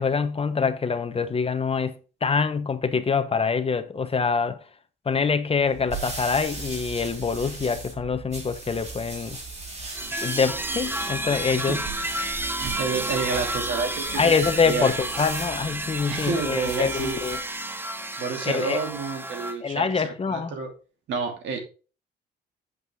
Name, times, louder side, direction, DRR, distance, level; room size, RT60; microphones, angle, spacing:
voice 1, 0.0-4.6 5.0-9.4 10.2-11.8 14.1-17.4 18.4-18.8 19.6-20.6, left 5 dB, 30° left, 1.1 m, -25 dB
sound 1, 5.6-17.5, right 3 dB, 35° right, 4.2 m, -38 dB
sound 2, 9.9-19.5, right 1 dB, 10° right, 1.1 m, -31 dB
voice 2, 12.6-14.3 14.6-14.9 16.1-17.2 18.2-20.7 21.1-21.6, right 5 dB, 85° right, 2.8 m, -29 dB
8.2 x 8.0 x 3.6 m
cardioid pair, 105°, 19 cm